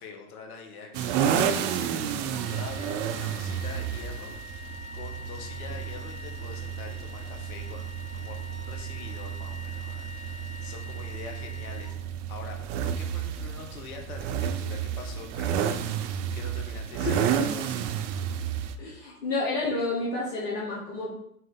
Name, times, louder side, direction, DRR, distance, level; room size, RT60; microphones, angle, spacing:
voice 1, 0.0-12.0 12.3-17.9, left 5 dB, 65° left, 2 dB, 1.2 m, -45 dB
sound 1, 0.9-18.8, right 8 dB, 55° right, 0.5 m, -31 dB
Wind instrument woodwind instrument, 2.3-12.4, left 3 dB, ahead, 1.4 m, -45 dB
voice 2, 18.8-21.1, left 2 dB, 90° left, -5 dB, 1.1 m, -30 dB
4.0 x 2.5 x 3.9 m, 0.71 s
hypercardioid pair, 95°, 47 cm